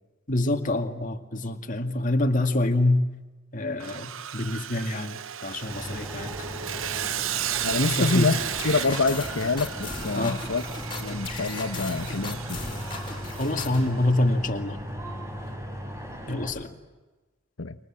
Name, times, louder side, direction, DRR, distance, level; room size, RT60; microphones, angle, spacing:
voice 1, 0.3-3.0 3.5-6.4 7.8-8.3 10.1-10.4 13.4-14.8 16.3-16.7, left 2 dB, 40° left, 5 dB, 2.1 m, -26 dB
Sawing, 3.8-14.1, right 10 dB, 70° right, 0.8 m, -34 dB
sound 1, 5.7-16.5, equal, 15° right, 4.5 m, -37 dB
voice 2, 7.6-10.6 11.0-12.6 17.6-17.8, left 3 dB, 70° left, 8 dB, 1.0 m, -26 dB
sound 2, 8.6-13.9, left 4 dB, 25° left, 3.7 m, -38 dB
29.0 x 25.0 x 7.5 m, 1.2 s
head